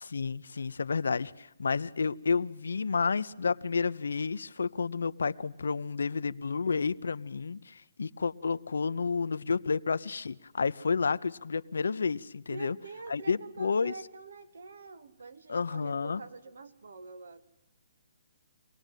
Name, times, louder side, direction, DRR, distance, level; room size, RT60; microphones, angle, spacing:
voice 1, 0.0-12.8 13.1-13.9 15.5-16.2, left 5 dB, 85° left, 0.8 m, -30 dB
voice 2, 12.5-17.4, right 4 dB, 75° right, 2.1 m, -45 dB
25.0 x 19.0 x 9.2 m
hypercardioid pair, 165°, 0 cm